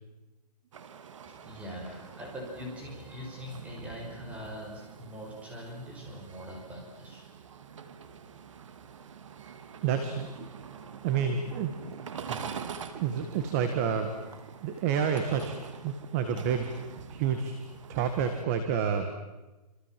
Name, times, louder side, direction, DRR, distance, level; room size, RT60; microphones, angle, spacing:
sound 1, 0.7-18.5, right 7 dB, 50° right, 2.3 m, -45 dB
voice 1, 1.3-7.2, equal, 5° right, -1 dB, 5.5 m, -42 dB
voice 2, 9.8-10.5 11.0-11.8 12.2-14.1 14.6-15.6 15.8-16.7 17.1-17.5 17.9-19.1, right 7 dB, 20° right, 7 dB, 1.7 m, -29 dB
sound 2, 11.1-11.4 11.7-15.5 15.9-16.7, right 6 dB, 65° right, 2.4 m, -49 dB
27.0 x 26.5 x 7.6 m, 1.1 s
hypercardioid pair, 170°, 21 cm